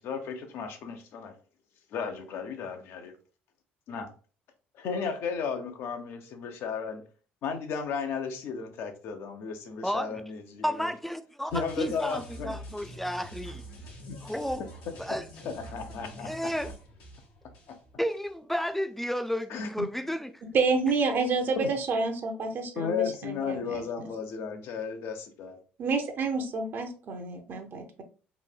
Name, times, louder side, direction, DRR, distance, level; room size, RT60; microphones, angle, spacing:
voice 1, 0.0-1.4 1.9-3.1 3.9-4.1 4.7-7.0 7.4-10.9 11.5-12.6 14.1-14.2 14.9-15.0 15.4-16.5 17.7-17.8 19.5-19.9 21.6-21.7 22.8-25.6, left 6 dB, 65° left, 0.6 m, -34 dB
voice 2, 9.8-10.2 10.6-13.6 14.2-14.7 15.0-15.3 16.2-16.7 18.0-20.3, equal, 5° left, 0.3 m, -32 dB
sound 1, 11.5-18.3 18.6-18.8, equal, 80° left, 0.9 m, -46 dB
voice 3, 20.5-24.1 25.8-28.0, right 4 dB, 55° right, 0.7 m, -29 dB
3.0 x 2.6 x 2.2 m
hypercardioid pair, 65°, 4 cm